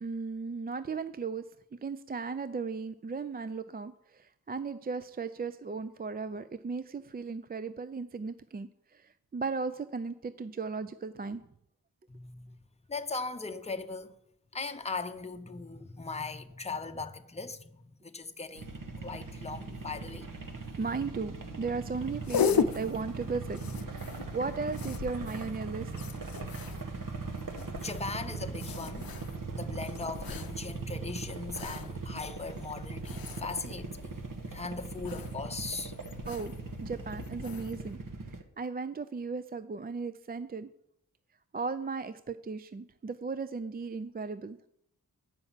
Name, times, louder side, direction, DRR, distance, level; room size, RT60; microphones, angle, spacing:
voice 1, 0.0-1.4 1.7-11.4 20.8-24.1 24.3-25.9 36.3-36.5 36.8-38.0 38.6-40.7 41.5-44.6, right 4 dB, 25° right, 0.4 m, -36 dB
voice 2, 12.1-12.5 12.9-14.2 14.5-18.8 19.0-20.3 27.8-29.1 29.5-34.1 34.5-35.9, left 4 dB, 20° left, 0.7 m, -39 dB
sound 1, 18.6-38.4, right 4 dB, 65° right, 1.1 m, -40 dB
sound 2, 21.9-38.0, left 7 dB, 75° left, 0.6 m, -38 dB
9.0 x 5.6 x 7.3 m
wide cardioid pair, 70°, 35 cm